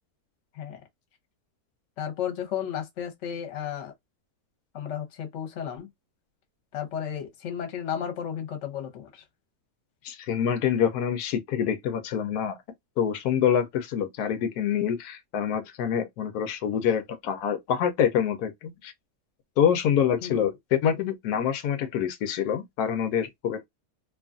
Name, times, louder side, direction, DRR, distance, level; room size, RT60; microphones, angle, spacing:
voice 1, 2.0-3.9 4.7-5.9 6.7-9.2 20.2-20.4, left 9 dB, 55° left, 1.1 m, -33 dB
voice 2, 10.0-12.6 13.0-18.9 19.6-23.7, left 8 dB, 90° left, 1.1 m, -26 dB
2.9 x 2.4 x 2.4 m
omnidirectional pair, 1.6 m